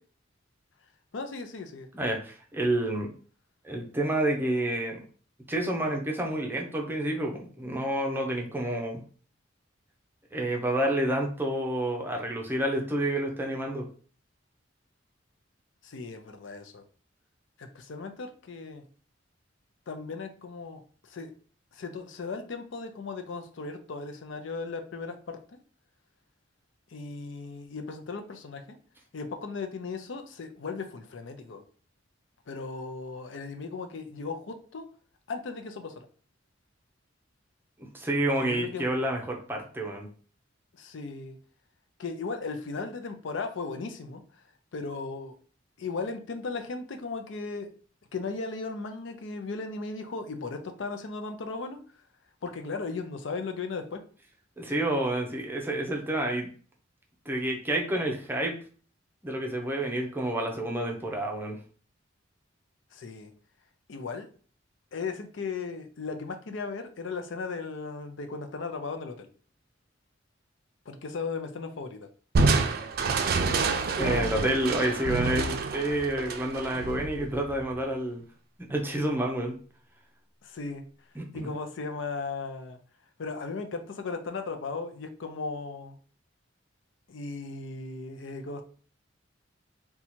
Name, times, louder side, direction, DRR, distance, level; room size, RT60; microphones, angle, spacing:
voice 1, 1.1-1.9 15.8-16.8 17.6-18.8 19.9-21.3 21.7-25.6 26.9-28.8 29.1-31.6 32.5-34.9 35.3-36.1 38.3-38.9 40.7-41.4 42.0-44.2 44.7-45.3 45.8-47.7 48.1-51.8 52.4-54.0 62.9-63.3 63.9-64.3 64.9-69.3 70.9-72.1 74.1-74.6 80.4-80.8 81.3-82.8 83.2-86.0 87.1-88.6, left 4 dB, 75° left, 7 dB, 0.5 m, -36 dB
voice 2, 1.9-3.1 3.6-5.0 5.5-9.0 10.3-13.9 37.9-40.1 54.6-56.5 57.3-58.5 59.2-61.6 73.9-78.2 78.7-79.5 81.2-81.5, right 1 dB, 10° right, 0 dB, 0.6 m, -29 dB
Crushing, 72.3-77.7, right 3 dB, 55° right, 0.4 m, -28 dB
2.8 x 2.3 x 4.2 m, 0.41 s
head